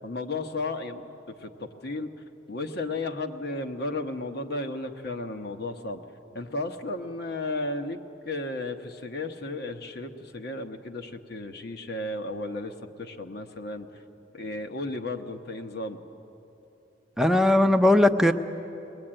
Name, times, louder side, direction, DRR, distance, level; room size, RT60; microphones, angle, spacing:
voice 1, 0.0-1.1 1.3-2.1 2.5-6.0 6.3-8.0 8.2-14.0 14.3-16.0, left 2 dB, 55° left, 6 dB, 1.2 m, -34 dB
voice 2, 17.2-18.3, left 1 dB, 5° right, 4 dB, 0.7 m, -19 dB
21.0 x 21.0 x 8.9 m, 3.0 s
head